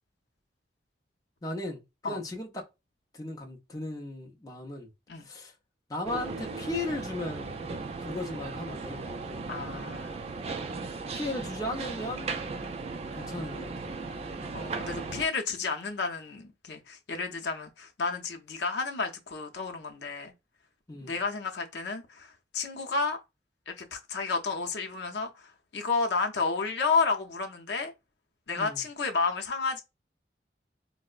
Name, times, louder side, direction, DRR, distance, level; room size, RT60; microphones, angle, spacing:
voice 1, 1.4-2.7 3.1-4.9 5.2-5.5 5.9-7.6 8.0-9.4 10.6-10.8 11.1-12.3 13.2-13.7 20.9-21.2 28.6-28.8, left 2 dB, 20° left, 0.5 m, -36 dB
sound 1, 6.0-15.3, right 4 dB, 35° right, 0.3 m, -37 dB
voice 2, 9.5-10.2 14.5-20.3 21.0-23.2 23.7-25.3 25.7-27.9 28.5-29.8, left 4 dB, 75° left, 0.6 m, -31 dB
4.3 x 2.0 x 2.4 m
head